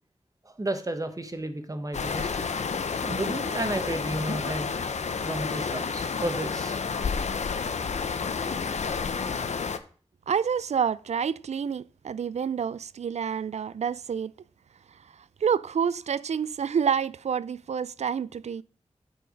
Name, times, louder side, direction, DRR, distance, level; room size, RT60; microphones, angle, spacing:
voice 1, 0.4-2.4 3.0-4.7 5.2-6.8, right 1 dB, 30° right, 1.3 m, -32 dB
sound 1, 1.9-9.8, left 5 dB, 80° left, 0.7 m, -30 dB
voice 2, 10.3-14.3 15.1-18.6, right 7 dB, 75° right, 0.4 m, -28 dB
9.5 x 4.6 x 5.1 m
wide cardioid pair, 60°, 11 cm